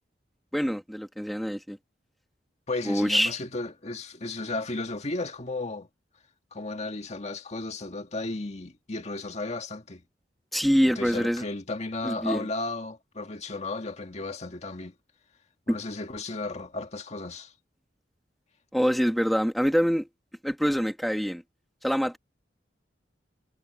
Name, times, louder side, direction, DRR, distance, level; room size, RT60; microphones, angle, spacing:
voice 1, 0.5-1.8 2.9-3.4 10.5-11.4 12.0-12.5 15.7-15.8 18.7-20.1 20.4-21.4 21.8-22.2, equal, ahead, 2.3 m, -25 dB
voice 2, 2.7-5.9 6.5-10.0 10.8-14.9 15.7-17.5, left 2 dB, 40° left, 1.9 m, -34 dB
head